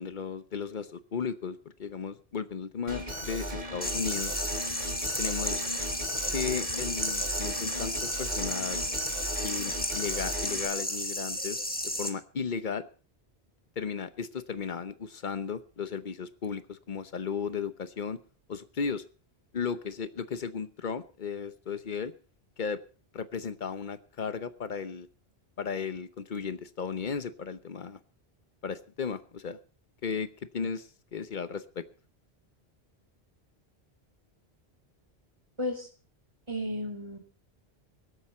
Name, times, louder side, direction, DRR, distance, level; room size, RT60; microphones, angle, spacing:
voice 1, 0.0-4.4 5.2-5.7 6.2-8.8 9.4-11.6 12.0-12.9 13.8-18.2 18.5-19.0 19.5-22.1 22.6-22.8 23.1-25.1 25.6-28.0 28.6-29.6 30.0-30.3 30.5-31.8, left 6 dB, 50° left, 13 dB, 1.0 m, -35 dB
Alarm, 2.9-10.7, right 1 dB, 45° right, 2.6 m, -37 dB
sound 1, 3.8-12.1, left 1 dB, 10° left, 1.4 m, -33 dB
voice 2, 35.6-35.9 36.5-37.2, left 1 dB, 25° right, 2 dB, 2.8 m, -33 dB
24.5 x 8.3 x 4.2 m, 0.37 s
omnidirectional pair, 1.1 m